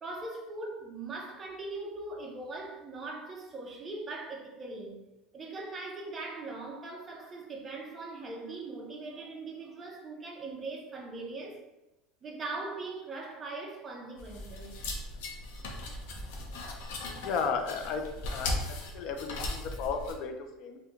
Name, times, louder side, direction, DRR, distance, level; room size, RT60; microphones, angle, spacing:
voice 1, 0.0-5.0 5.3-11.6 12.2-14.7 16.1-16.2, right 3 dB, 20° right, 0.5 m, -40 dB
sound 1, 14.2-20.1, left 2 dB, 90° left, 0.6 m, -38 dB
voice 2, 17.2-18.5 18.9-20.8, left 5 dB, 45° left, 0.4 m, -34 dB
2.9 x 2.2 x 3.7 m
cardioid pair, 165°, 0 cm